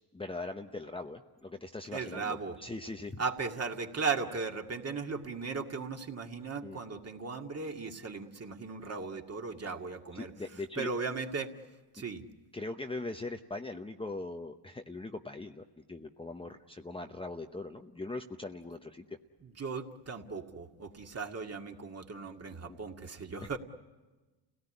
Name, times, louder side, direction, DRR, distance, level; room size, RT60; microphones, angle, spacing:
voice 1, 0.1-3.2 6.6-6.8 10.1-10.9 12.5-19.2 22.7-22.8 23.4-23.6, left 2 dB, 10° left, 5 dB, 0.9 m, -41 dB
voice 2, 1.9-2.6 3.2-10.3 10.8-11.5 11.9-12.2 19.4-23.6, right 4 dB, 30° right, 3 dB, 2.1 m, -37 dB
29.5 x 17.5 x 9.9 m, 1.2 s
supercardioid pair, 90°, 46 cm